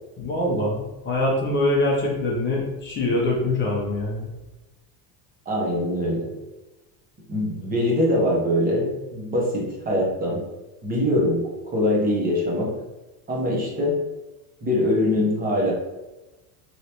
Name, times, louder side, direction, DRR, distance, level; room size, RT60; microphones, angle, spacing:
voice 1, 0.2-4.3, left 1 dB, 25° left, -3 dB, 0.6 m, -24 dB
voice 2, 5.5-6.3 7.3-10.4 10.8-12.7 13.3-14.0 14.6-15.7, left 1 dB, 20° right, -3 dB, 0.8 m, -23 dB
3.2 x 3.0 x 2.8 m, 1.1 s
cardioid pair, 155°, 48 cm